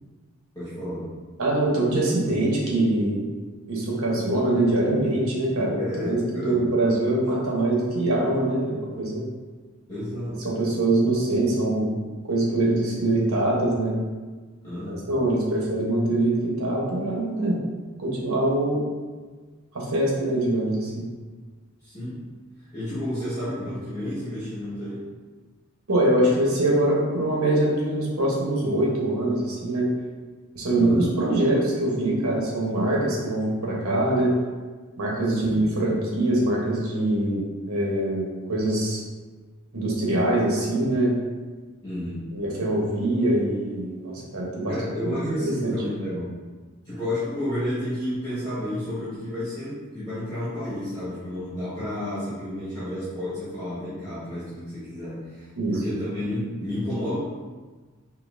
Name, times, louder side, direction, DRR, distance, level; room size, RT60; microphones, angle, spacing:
voice 1, 0.5-1.1 5.8-6.7 9.9-10.5 14.6-15.1 21.8-22.2 22.7-25.0 30.7-31.0 35.2-35.6 41.8-42.2 44.7-46.3 46.8-57.2, left 1 dB, 20° left, -13 dB, 1.5 m, -31 dB
voice 2, 1.4-3.2 3.7-9.2 10.4-11.9 12.3-13.9 14.8-17.6 18.0-18.9 19.7-21.0 25.9-29.9 30.5-34.3 35.0-39.0 39.7-41.1 42.3-44.7 45.0-45.7 55.6-55.7, right 1 dB, 85° right, -3 dB, 1.2 m, -23 dB
5.5 x 2.8 x 2.7 m, 1.4 s
head